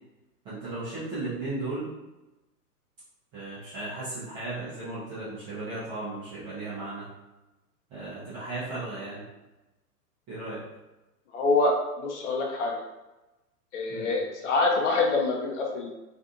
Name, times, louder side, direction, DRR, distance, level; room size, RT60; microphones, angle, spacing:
voice 1, 0.4-1.9 3.3-7.1 7.9-9.2 10.3-10.6 13.9-14.1, right 2 dB, 10° right, -11 dB, 0.4 m, -35 dB
voice 2, 11.3-12.8 13.7-15.9, left 3 dB, 50° left, 0 dB, 0.7 m, -26 dB
2.5 x 2.4 x 2.5 m, 1.0 s
figure-of-eight pair, 110°, 47 cm